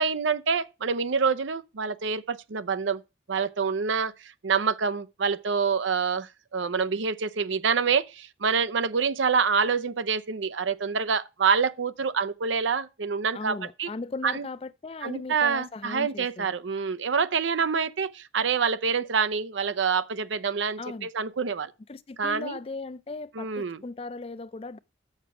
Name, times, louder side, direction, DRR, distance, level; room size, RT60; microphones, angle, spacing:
voice 1, 0.0-3.0 3.3-13.9 14.2-14.4 15.0-21.7 22.2-22.6 23.4-23.8, right 5 dB, 85° right, 0.6 m, -26 dB
voice 2, 13.3-16.5 20.8-21.1 21.9-24.8, left 3 dB, 30° left, 0.4 m, -38 dB
7.0 x 6.7 x 5.9 m
head